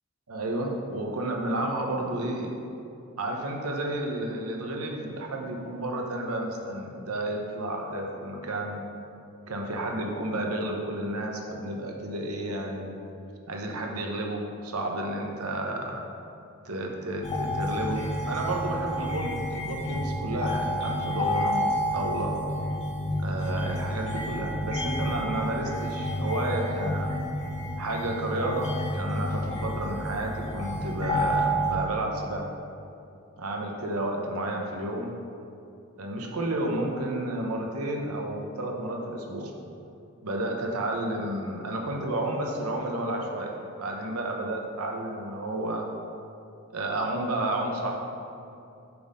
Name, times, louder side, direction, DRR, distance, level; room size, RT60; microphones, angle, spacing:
voice 1, 0.3-2.5 3.2-8.8 9.5-12.9 13.5-16.0 16.6-22.4 23.2-27.1 27.8-32.5 33.4-35.1 36.0-39.5 40.2-45.9 46.7-48.0, right 1 dB, 85° right, 1 dB, 0.9 m, -31 dB
sound 1, 17.2-31.7, equal, 30° left, 1.5 m, -30 dB
6.7 x 4.2 x 5.4 m, 2.7 s
head